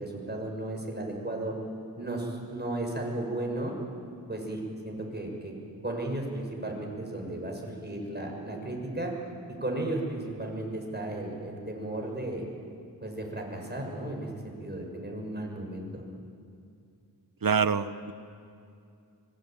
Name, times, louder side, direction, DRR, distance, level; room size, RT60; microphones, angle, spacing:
voice 1, 0.0-1.5 2.0-3.7 4.3-5.5 5.8-9.1 9.6-12.4 13.0-16.0, right 1 dB, 25° right, 0 dB, 6.8 m, -34 dB
voice 2, 17.4-18.1, right 6 dB, 60° right, 12 dB, 1.1 m, -26 dB
24.5 x 22.0 x 9.3 m, 2.5 s
wide cardioid pair, 60°, 39 cm